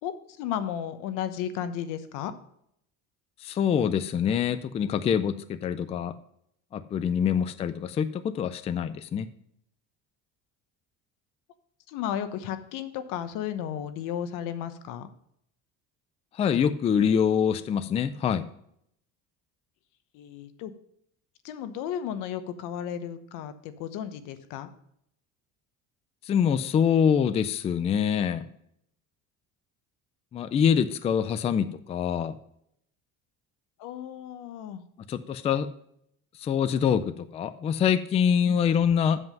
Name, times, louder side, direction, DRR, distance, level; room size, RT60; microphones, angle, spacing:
voice 1, 0.0-2.3 11.9-15.1 20.1-20.7 21.4-24.7 33.8-34.8, left 9 dB, 85° left, 11 dB, 1.1 m, -34 dB
voice 2, 3.4-6.1 6.7-9.3 16.3-18.4 26.3-28.5 30.3-32.4 35.1-35.7 36.4-39.2, left 7 dB, 20° left, 13 dB, 0.3 m, -25 dB
7.9 x 7.6 x 5.3 m, 0.71 s
cardioid pair, 170°, 31 cm